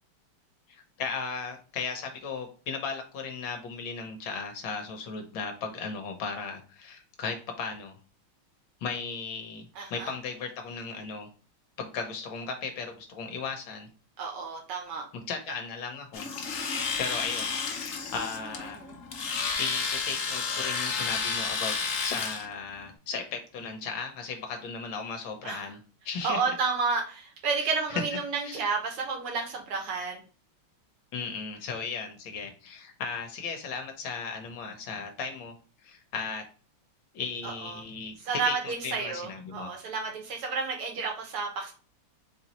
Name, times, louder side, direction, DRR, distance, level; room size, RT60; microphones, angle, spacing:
voice 1, 0.7-8.0 8.8-11.3 11.8-13.9 15.1-16.3 17.0-18.8 19.6-21.8 22.0-25.8 26.0-26.5 27.9-28.0 28.4-28.6 31.1-35.5 35.8-36.4 37.1-39.7, left 5 dB, 65° left, 5 dB, 1.5 m, -36 dB
voice 2, 9.8-10.1 14.2-15.1 18.8-18.9 25.4-25.7 26.2-30.2 37.4-37.8 38.2-41.7, right 4 dB, 85° right, 2 dB, 2.2 m, -31 dB
Domestic sounds home sounds, 16.1-22.5, left 5 dB, 85° left, 0.7 m, -31 dB
4.4 x 3.9 x 2.9 m, 0.37 s
omnidirectional pair, 2.4 m